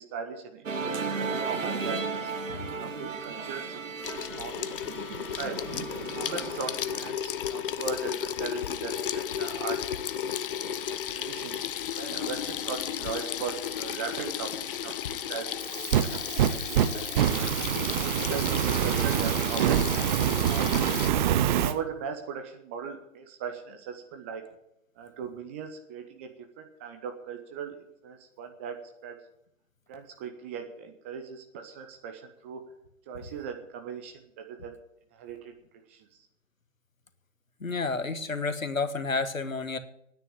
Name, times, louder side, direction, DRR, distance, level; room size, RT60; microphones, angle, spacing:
voice 1, 0.0-4.8 5.1-5.6 6.1-9.8 10.1-10.4 10.9-11.7 12.0-15.5 16.0-16.2 16.5-17.5 18.0-21.1 21.6-24.4 25.0-28.8 29.0-29.2 29.9-32.6 33.1-34.7 35.1-35.5 35.9-36.3, right 6 dB, 10° right, 5 dB, 0.4 m, -39 dB
Musical instrument, 0.7-7.1, right 4 dB, 70° right, 1.5 m, -35 dB
Water tap faucet / Sink (filling or washing), 4.0-21.1, left 9 dB, 45° left, 0.6 m, -34 dB
Fire, 15.6-21.7, right 10 dB, 35° right, 0.8 m, -25 dB
voice 2, 37.6-39.8, left 4 dB, 80° left, 11 dB, 1.4 m, -30 dB
9.8 x 9.5 x 9.9 m, 0.78 s
figure-of-eight pair, 120°, 40 cm